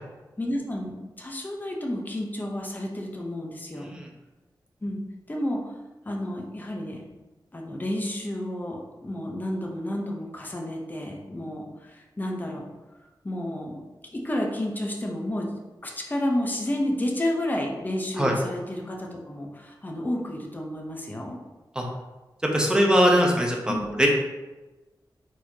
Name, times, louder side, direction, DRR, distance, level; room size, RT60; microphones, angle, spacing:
voice 1, 0.4-3.9 4.8-5.0 5.3-5.7 6.1-7.1 7.5-12.7 13.2-13.8 14.1-15.5 15.8-21.4 23.7-23.9, left 1 dB, 20° left, 0 dB, 0.8 m, -31 dB
voice 2, 22.5-23.7 24.0-24.1, equal, 10° right, 0 dB, 0.8 m, -21 dB
4.6 x 4.1 x 2.8 m, 1.1 s
wide cardioid pair, 110°, 8 cm